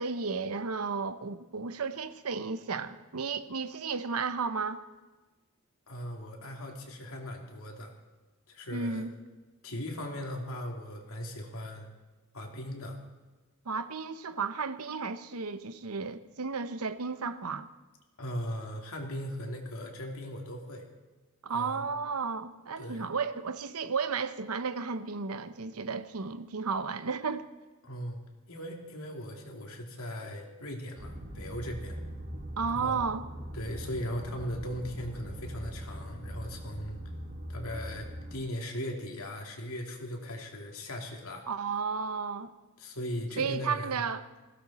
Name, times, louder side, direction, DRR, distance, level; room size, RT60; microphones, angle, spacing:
voice 1, 0.0-4.8 8.7-9.1 13.7-17.7 21.4-27.5 32.6-33.3 41.5-42.5 43.4-44.3, right 5 dB, 85° right, 0.9 m, -33 dB
voice 2, 5.9-7.9 8.5-9.1 9.6-11.9 12.3-13.0 18.2-20.9 21.5-21.8 22.8-23.1 27.8-28.2 28.5-32.0 32.8-33.0 33.5-37.0 37.5-41.5 42.8-44.0, equal, 70° left, 2.7 m, -38 dB
sound 1, 30.9-38.4, equal, 40° right, 2.3 m, -41 dB
20.0 x 16.0 x 4.3 m
head